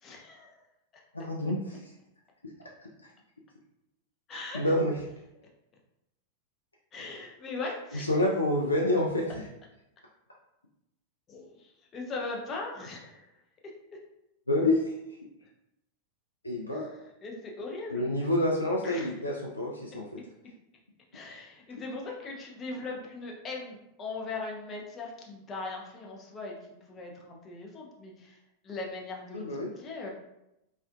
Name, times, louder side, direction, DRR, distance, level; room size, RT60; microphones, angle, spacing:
voice 1, 0.0-0.6 4.3-4.7 6.9-8.1 11.3-13.2 13.6-13.7 15.4-15.5 16.7-16.9 17.2-18.1 18.8-19.1 21.1-26.6 26.8-28.4 28.6-29.5 29.8-30.1, left 3 dB, 25° left, -1 dB, 0.5 m, -39 dB
voice 2, 1.1-1.9 3.0-3.1 4.3-4.9 7.9-9.4 14.5-15.0 16.4-16.9 17.9-20.2 29.3-29.7, left 1 dB, 80° left, -3 dB, 0.3 m, -28 dB
2.4 x 2.1 x 2.5 m, 0.88 s
figure-of-eight pair, 90°, 0 cm